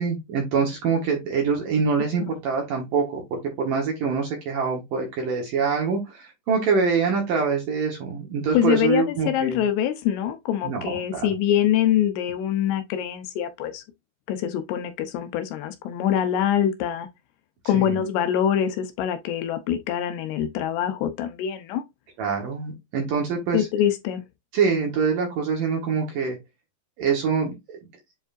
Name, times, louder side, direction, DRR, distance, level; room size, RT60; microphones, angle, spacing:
voice 1, 0.0-9.6 10.6-11.3 17.6-18.0 22.2-23.7 24.5-26.4 27.0-27.8, right 5 dB, 65° right, 2.3 m, -25 dB
voice 2, 8.5-13.8 14.3-17.1 17.7-21.8 23.5-24.2, left 10 dB, 80° left, 2.7 m, -24 dB
7.8 x 4.9 x 2.5 m
omnidirectional pair, 5.3 m